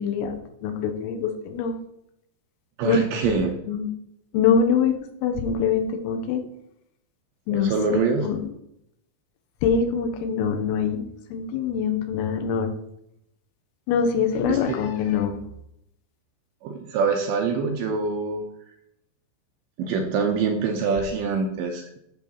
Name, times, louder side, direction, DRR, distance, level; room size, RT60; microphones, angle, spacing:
voice 1, 0.0-1.8 2.9-3.4 3.7-3.9 4.3-4.9 5.2-6.4 7.5-8.5 9.6-11.0 11.3-12.7 13.9-15.4, left 6 dB, 75° left, 5 dB, 3.5 m, -24 dB
voice 2, 2.8-3.6 7.5-8.3 14.5-14.6 16.6-18.4 19.8-22.0, right 5 dB, 80° right, 3 dB, 2.7 m, -25 dB
12.0 x 4.0 x 7.0 m, 0.77 s
omnidirectional pair, 6.0 m